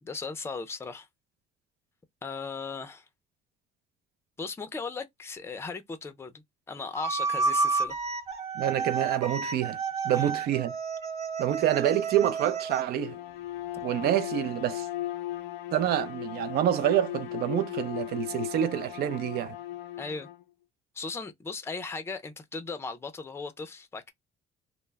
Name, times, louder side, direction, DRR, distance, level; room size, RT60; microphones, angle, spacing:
voice 1, 0.0-1.1 2.2-3.1 4.4-8.0 10.1-10.3 20.0-20.3 20.9-24.1, left 4 dB, 15° left, 0.4 m, -37 dB
sound 1, 6.9-12.9, right 4 dB, 35° right, 0.8 m, -30 dB
voice 2, 8.5-9.8 10.0-10.7 11.4-13.2 13.8-14.9 15.7-19.5, right 11 dB, 70° right, 0.4 m, -27 dB
Bowed string instrument, 12.9-20.4, left 14 dB, 90° left, 0.5 m, -37 dB
2.1 x 2.0 x 3.2 m
cardioid pair, 110°, 17 cm